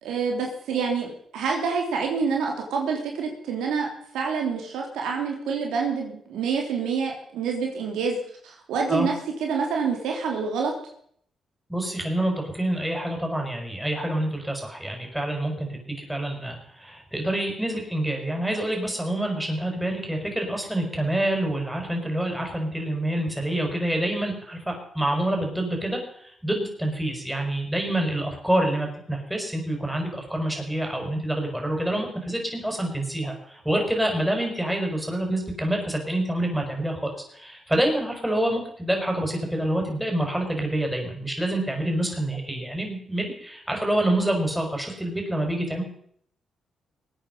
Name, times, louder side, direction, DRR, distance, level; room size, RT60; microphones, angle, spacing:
voice 1, 0.0-3.9 4.1-8.2 8.4-9.1 9.4-10.7, right 5 dB, 80° right, 1 dB, 3.1 m, -27 dB
voice 2, 11.7-45.8, right 1 dB, 5° right, 2 dB, 5.8 m, -27 dB
21.0 x 9.0 x 5.5 m, 0.65 s
supercardioid pair, 55°, 0 cm